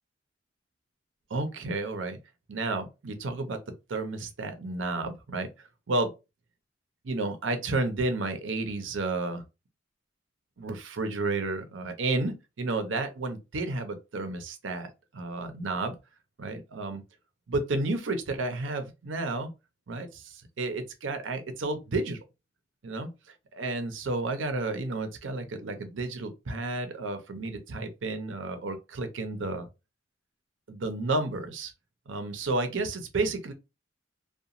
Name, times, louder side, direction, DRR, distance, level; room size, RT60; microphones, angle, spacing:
voice 1, 1.3-2.2 2.5-6.1 7.0-9.4 10.6-16.0 16.4-17.0 17.5-19.5 19.9-22.2 22.8-23.1 23.5-29.7 30.7-31.7 32.1-33.5, right 2 dB, 90° right, 0.6 m, -31 dB
2.8 x 2.2 x 2.5 m
head